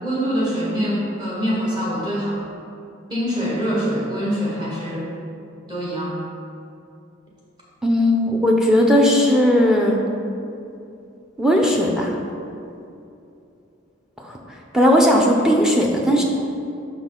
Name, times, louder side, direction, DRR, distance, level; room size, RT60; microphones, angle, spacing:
voice 1, 0.0-2.4 3.1-5.1 5.7-6.1, equal, 20° right, -6 dB, 1.1 m, -24 dB
voice 2, 7.8-10.0 11.4-12.1 14.2-14.4 14.7-16.2, equal, 5° right, -1 dB, 0.5 m, -17 dB
6.1 x 5.5 x 3.7 m, 2.6 s
head